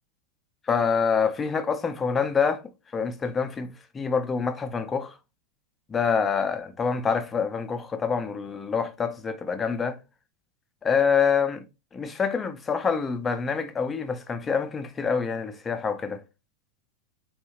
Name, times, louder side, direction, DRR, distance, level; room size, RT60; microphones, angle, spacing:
voice 1, 0.7-2.6 2.9-5.2 5.9-10.0 10.8-11.6 11.9-16.2, left 6 dB, 20° left, 0.5 m, -26 dB
3.8 x 2.7 x 2.9 m
figure-of-eight pair, 90°, 0 cm